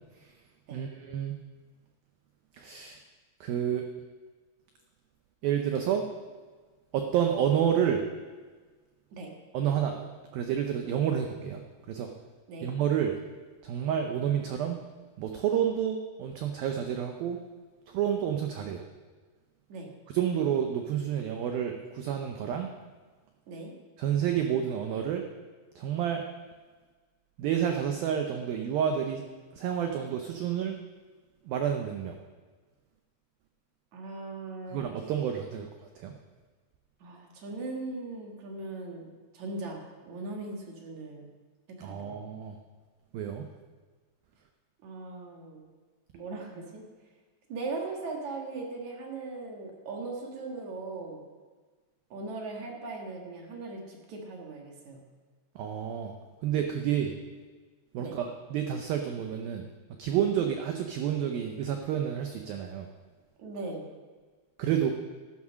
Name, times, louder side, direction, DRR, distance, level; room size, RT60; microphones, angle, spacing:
voice 1, 0.7-1.4 2.6-3.0 3.4-3.8 5.4-6.0 6.9-8.0 9.5-10.1 10.3-11.6 11.9-12.1 12.6-13.1 13.6-14.8 15.2-17.4 17.9-18.8 20.1-22.7 24.0-25.2 25.8-26.2 27.4-29.2 29.6-30.8 31.5-32.1 34.7-35.7 36.0-36.1 41.8-42.6 43.1-43.5 55.6-56.1 56.4-57.1 57.9-59.7 60.0-62.9 64.6-64.9, right 9 dB, 85° right, 4 dB, 2.1 m, -29 dB
voice 2, 33.9-34.8 37.0-41.3 41.8-42.2 44.8-45.6 46.1-46.8 47.5-51.2 52.1-55.0 58.0-58.2 63.4-63.9, right 3 dB, 55° right, 1 dB, 2.2 m, -39 dB
12.5 x 9.4 x 6.3 m, 1.4 s
omnidirectional pair, 5.3 m